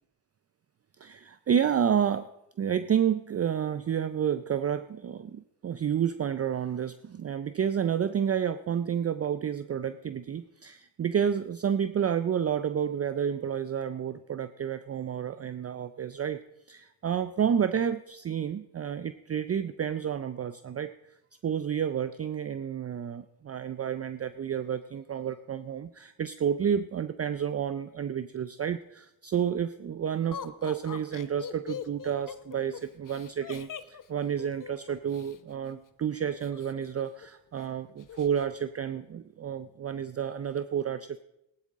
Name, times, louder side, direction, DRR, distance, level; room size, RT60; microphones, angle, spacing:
voice 1, 1.0-2.3 2.6-16.4 16.7-20.9 21.4-41.2, right 8 dB, 30° right, 13 dB, 0.5 m, -30 dB
Laughter, 30.3-35.4 36.4-37.3 37.6-37.7 38.0-38.5, left 8 dB, 40° left, 0.9 m, -42 dB
15.5 x 11.0 x 3.7 m, 0.87 s
supercardioid pair, 60°, 48 cm